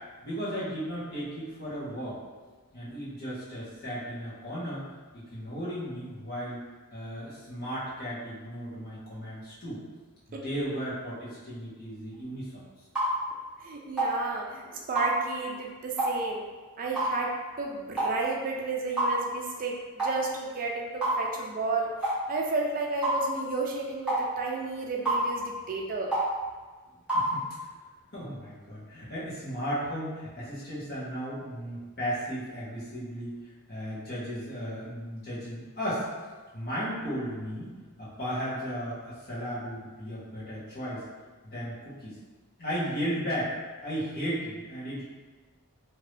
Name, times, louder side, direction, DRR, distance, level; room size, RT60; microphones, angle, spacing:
voice 1, 0.2-2.2 2.7-4.8 5.1-6.6 6.9-9.8 10.3-12.6 27.1-27.7 28.1-33.3 33.7-36.1 36.5-37.7 38.0-41.0 41.4-42.2 42.6-43.5 43.8-45.0, equal, 45° left, -9 dB, 1.3 m, -35 dB
sound 1, 13.0-13.1 14.0-14.1 15.0-15.1 16.0-16.2 17.0-17.1 18.0-18.2 19.0-19.1 20.0-20.2 21.0-21.2 22.0-22.2 23.0-23.2 24.1-24.2 25.1-25.2 26.1-26.3 27.1-27.3, right 1 dB, 5° right, 1.2 m, -26 dB
voice 2, 13.6-16.4 16.8-21.9 22.3-26.1, right 3 dB, 40° right, 0 dB, 0.4 m, -32 dB
2.9 x 2.7 x 3.2 m, 1.4 s
head